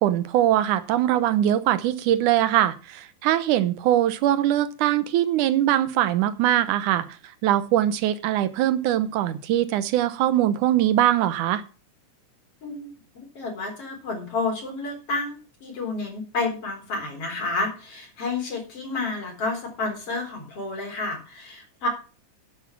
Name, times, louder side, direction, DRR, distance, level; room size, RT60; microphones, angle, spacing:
voice 1, 0.0-7.1 7.4-11.6, right 12 dB, 85° right, 13 dB, 2.4 m, -22 dB
voice 2, 12.6-21.9, left 3 dB, 50° left, 2 dB, 4.9 m, -30 dB
11.0 x 8.2 x 5.9 m, 0.35 s
omnidirectional pair, 3.5 m